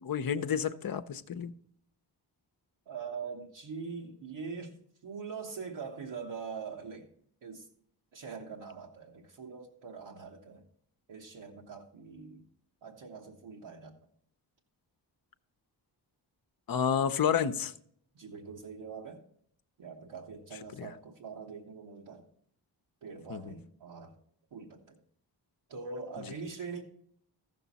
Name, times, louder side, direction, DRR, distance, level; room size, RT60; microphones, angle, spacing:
voice 1, 0.0-1.5 16.7-17.7 20.8-20.9 23.3-23.5, left 7 dB, 50° left, 0.7 m, -30 dB
voice 2, 2.9-4.8 5.0-7.1 7.4-7.7 8.1-10.6 11.1-12.4 12.8-13.9 18.1-19.2 19.8-22.3 23.0-24.1 24.5-25.0 25.7-26.8, right 5 dB, 80° right, 1.2 m, -43 dB
14.0 x 6.7 x 4.1 m
cardioid pair, 55°, 45 cm